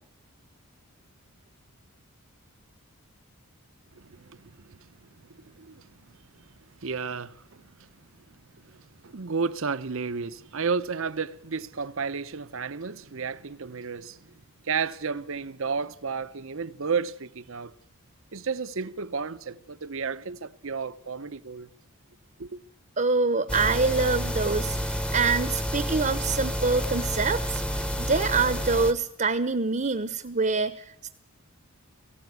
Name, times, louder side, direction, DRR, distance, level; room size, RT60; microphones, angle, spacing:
voice 1, 4.0-5.0 5.3-6.5 6.8-7.9 8.3-17.7 18.3-21.7 22.4-22.6, right 5 dB, 60° right, 0.8 m, -33 dB
voice 2, 23.0-27.6 28.0-31.1, right 4 dB, 35° right, 0.9 m, -25 dB
sound 1, 23.5-28.9, equal, 5° left, 1.0 m, -29 dB
18.5 x 16.0 x 9.5 m
head